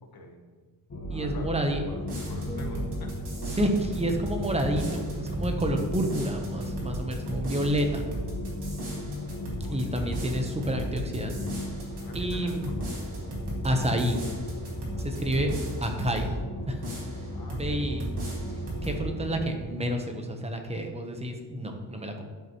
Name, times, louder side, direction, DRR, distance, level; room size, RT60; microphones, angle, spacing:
voice 1, 0.0-0.4 1.1-3.3 7.8-7.9 9.6-9.9 12.0-12.9 14.9-15.4 17.3-17.9, left 2 dB, 60° left, 3 dB, 1.2 m, -47 dB
sound 1, 0.9-19.5, left 1 dB, 35° left, 1.1 m, -36 dB
voice 2, 1.1-1.8 3.5-8.0 9.6-11.4 12.1-12.7 13.6-14.2 15.0-15.5 15.8-16.3 16.7-16.9 17.5-18.1 18.8-22.2, equal, 15° right, 3 dB, 0.9 m, -29 dB
sound 2, 2.0-16.4 16.8-17.7 18.0-19.0, right 2 dB, 85° right, 2.1 m, -37 dB
sound 3, 2.5-6.4 6.8-7.1, equal, 15° left, 0.4 m, -47 dB
11.5 x 5.3 x 3.0 m, 1.5 s
wide cardioid pair, 130°, 40 cm